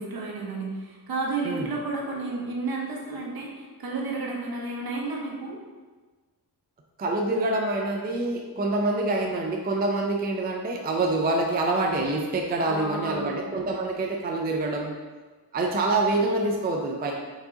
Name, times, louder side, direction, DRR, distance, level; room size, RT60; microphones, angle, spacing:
voice 1, 0.0-5.6 12.7-13.4, right 3 dB, 65° right, -1 dB, 1.0 m, -32 dB
voice 2, 1.4-1.8 7.0-14.9 15.5-17.1, right 2 dB, 25° right, 1 dB, 0.4 m, -26 dB
4.6 x 3.8 x 2.8 m, 1.3 s
wide cardioid pair, 130°, 39 cm